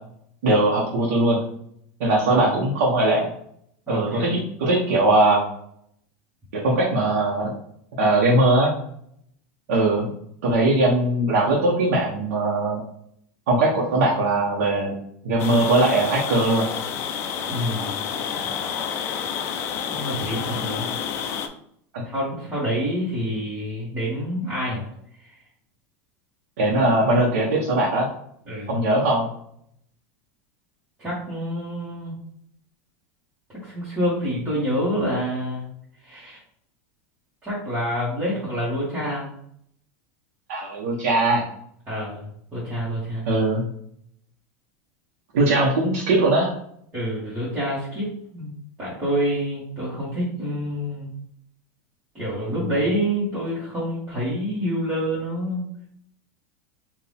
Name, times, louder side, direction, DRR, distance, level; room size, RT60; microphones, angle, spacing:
voice 1, 0.4-1.4 2.0-3.3 3.9-5.4 6.5-7.5 8.0-8.7 9.7-10.1 10.4-12.8 13.5-14.9 15.2-16.7 18.2-18.5 21.9-22.0 26.6-28.1 28.7-29.3 40.5-41.4 43.3-43.7 45.3-46.5, right 2 dB, 80° right, -4 dB, 1.2 m, -20 dB
voice 2, 3.9-4.3 17.5-17.9 19.8-20.9 22.0-24.9 25.2-25.4 28.5-28.8 31.0-32.2 33.5-35.7 36.0-36.4 37.4-39.3 41.9-42.2 42.5-43.2 46.9-48.5 48.8-51.1 52.1-55.6, equal, 15° right, -10 dB, 1.5 m, -27 dB
sound 1, 15.4-21.5, left 7 dB, 35° left, 0.4 m, -29 dB
4.7 x 2.6 x 3.5 m, 0.69 s
supercardioid pair, 165°, 8 cm